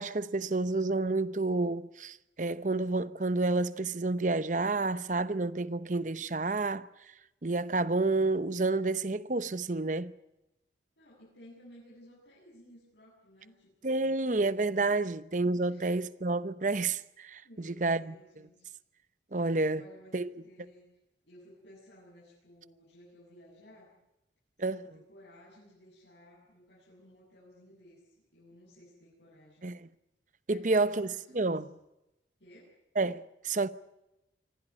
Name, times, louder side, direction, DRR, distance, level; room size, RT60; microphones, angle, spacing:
voice 1, 0.0-6.9 7.4-10.1 13.8-18.1 19.3-19.8 20.1-20.3 24.6-24.8 29.6-29.9 30.5-31.1 31.3-31.7 33.0-33.7, right 3 dB, 45° right, 0.8 m, -29 dB
voice 2, 11.0-14.2 15.0-15.3 15.7-15.9 17.4-18.7 19.3-20.9 21.2-23.9 24.6-29.7 30.5-31.6 32.4-32.7, equal, 75° left, 7.8 m, -56 dB
25.0 x 16.0 x 9.6 m
head